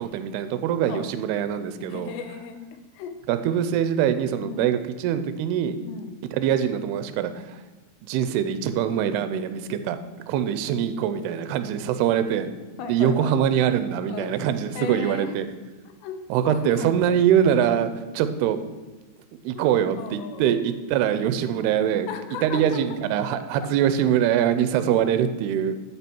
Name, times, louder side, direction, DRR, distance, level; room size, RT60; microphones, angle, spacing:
voice 1, 0.0-2.1 3.3-5.8 6.3-7.6 8.1-10.0 10.3-12.5 12.8-15.5 16.3-18.6 19.3-22.1 22.4-25.7, right 9 dB, 85° right, 10 dB, 2.5 m, -23 dB
voice 2, 1.9-2.6 2.9-3.1 4.4-4.6 5.9-6.2 12.8-13.3 14.1-14.3 14.8-15.3 16.0-16.9 19.5-19.7 19.9-20.7 22.1-23.0 23.6-23.7, left 7 dB, 80° left, 7 dB, 2.9 m, -36 dB
10.5 x 8.5 x 4.5 m, 1.3 s
omnidirectional pair, 5.1 m